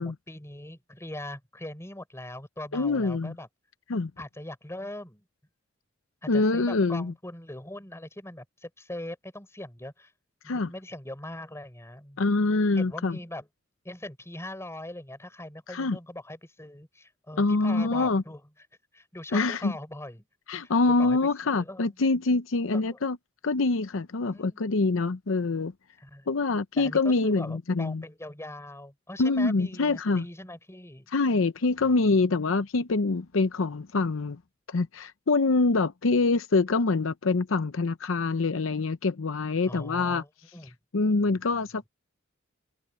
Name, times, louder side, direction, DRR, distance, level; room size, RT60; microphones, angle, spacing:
voice 1, 0.0-3.5 4.2-5.2 6.2-10.1 10.4-12.2 12.8-13.5 13.8-18.4 18.9-20.2 20.6-22.0 22.7-23.0 24.2-24.6 26.0-26.3 26.8-31.1 31.8-31.9 39.7-40.8, left 1 dB, 15° left, 5.2 m, -41 dB
voice 2, 2.7-3.3 3.9-4.1 6.3-7.1 10.5-10.7 12.2-13.2 15.7-16.0 17.4-18.2 19.3-19.7 20.5-23.2 23.4-25.7 26.3-28.0 29.2-30.2 31.1-34.4 34.7-40.2 40.9-41.9, left 3 dB, 80° left, 0.7 m, -25 dB
head